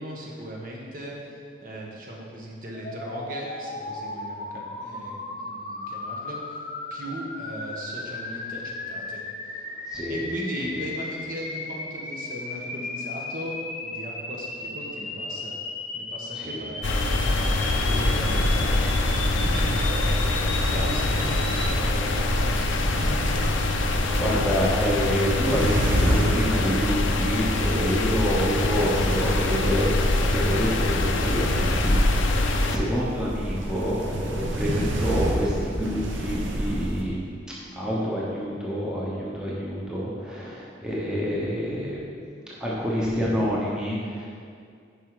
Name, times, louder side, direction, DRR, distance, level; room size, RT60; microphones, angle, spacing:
voice 1, 0.0-6.6 6.9-9.6 10.1-15.6 15.9-17.6 17.9-23.1, right 1 dB, 45° right, -2 dB, 1.5 m, -38 dB
sound 1, 2.7-21.8, left 2 dB, 35° left, 0.9 m, -36 dB
voice 2, 9.9-10.2 10.7-10.8 16.3-16.6 17.7-18.0 18.6-18.7 22.8-22.9 24.2-37.2 37.7-42.1 42.6-44.3, equal, 5° right, -6 dB, 1.0 m, -27 dB
sound 2, 16.8-32.8, left 2 dB, 90° left, 0.7 m, -24 dB
sound 3, 18.0-37.0, right 1 dB, 80° right, 1.1 m, -30 dB
9.8 x 5.6 x 4.9 m, 2.3 s
head